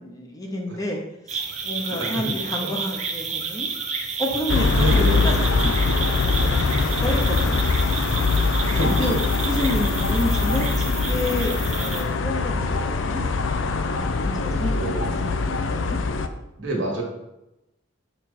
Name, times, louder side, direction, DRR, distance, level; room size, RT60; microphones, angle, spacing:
voice 1, 0.0-3.7 4.2-7.6 8.7-9.1 9.5-13.4 13.8-16.0, left 1 dB, 20° left, 1 dB, 0.8 m, -30 dB
sound 1, 1.3-12.0, right 5 dB, 35° right, 0.7 m, -31 dB
voice 2, 1.9-2.3 2.6-2.7 4.8-5.3 8.7-9.3 14.5-15.1 16.6-17.0, right 2 dB, 70° right, 0 dB, 1.7 m, -27 dB
sound 2, 4.5-16.3, left 4 dB, 75° left, 0.5 m, -22 dB
6.0 x 4.6 x 4.2 m, 0.92 s
head